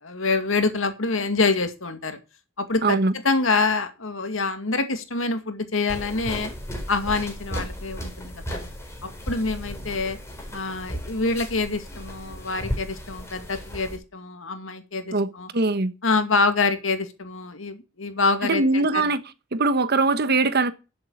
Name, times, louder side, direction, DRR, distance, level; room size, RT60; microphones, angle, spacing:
voice 1, 0.0-2.2 2.6-3.0 3.2-6.5 6.9-8.6 9.0-10.2 10.5-15.5 16.0-19.1, left 3 dB, 70° left, 2.2 m, -26 dB
voice 2, 2.8-3.1 15.1-15.9 18.4-19.2 19.5-20.7, right 3 dB, 55° right, 1.2 m, -22 dB
sound 1, 5.9-14.0, equal, 15° left, 4.3 m, -35 dB
11.0 x 7.7 x 6.3 m
head